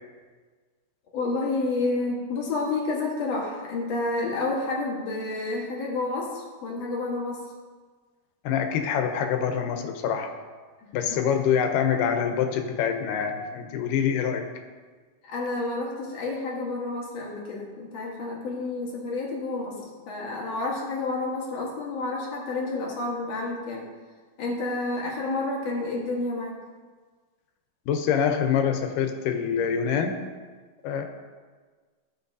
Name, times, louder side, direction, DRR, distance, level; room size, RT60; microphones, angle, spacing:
voice 1, 1.1-7.4 11.1-11.2 12.0-12.3 15.2-23.9 24.4-26.5, left 2 dB, 60° left, -3 dB, 2.3 m, -30 dB
voice 2, 8.5-10.3 10.9-14.5 27.9-30.2 30.8-31.0, left 7 dB, 90° left, 5 dB, 2.4 m, -25 dB
15.5 x 6.1 x 2.7 m, 1.5 s
omnidirectional pair, 3.7 m